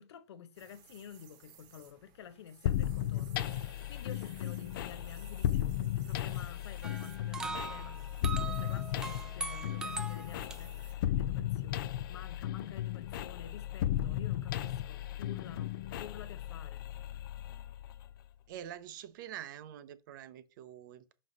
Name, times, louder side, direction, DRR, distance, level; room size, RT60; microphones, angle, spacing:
voice 1, 0.0-8.0 8.3-16.9, left 8 dB, 75° left, 1.0 m, -50 dB
sound 1, 0.5-10.9, right 8 dB, 30° right, 1.1 m, -59 dB
sound 2, 2.7-18.3, left 12 dB, 55° left, 0.5 m, -35 dB
sound 3, 6.8-10.6, right 3 dB, 5° right, 0.4 m, -41 dB
voice 2, 18.5-21.1, right 11 dB, 50° right, 0.7 m, -46 dB
6.0 x 5.4 x 4.0 m
supercardioid pair, 170°, 14 cm